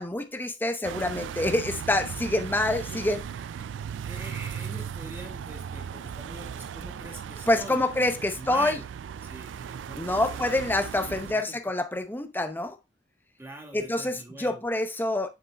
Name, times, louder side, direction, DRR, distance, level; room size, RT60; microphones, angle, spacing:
voice 1, 0.0-3.2 7.5-8.8 10.0-12.8 13.7-15.3, left 1 dB, 10° left, 0.7 m, -27 dB
sound 1, 0.8-11.3, right 7 dB, 85° right, 0.3 m, -37 dB
voice 2, 3.6-7.8 8.2-8.8 9.2-10.5 10.9-11.6 13.4-14.6, right 1 dB, 15° right, 1.8 m, -44 dB
6.8 x 6.7 x 2.3 m
head